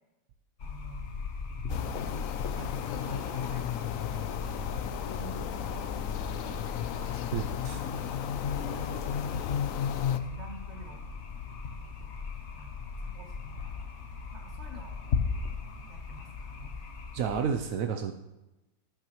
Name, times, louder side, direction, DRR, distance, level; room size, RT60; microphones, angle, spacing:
sound 1, 0.6-17.5, left 5 dB, 50° left, 0.9 m, -37 dB
voice 1, 0.6-1.1 2.2-4.7 5.1-6.0 6.4-7.2 7.7-8.1 8.6-9.3 10.1-11.1 11.8-12.1 12.5-12.7 13.0-13.9 14.3-15.0 15.9-16.8, right 3 dB, 40° right, 1 dB, 1.9 m, -49 dB
sound 2, 1.7-10.2, left 9 dB, 75° left, 0.7 m, -34 dB
voice 2, 7.3-7.8 17.1-18.1, right 7 dB, 70° right, 6 dB, 0.8 m, -30 dB
12.0 x 11.0 x 3.0 m, 1.0 s
omnidirectional pair, 2.0 m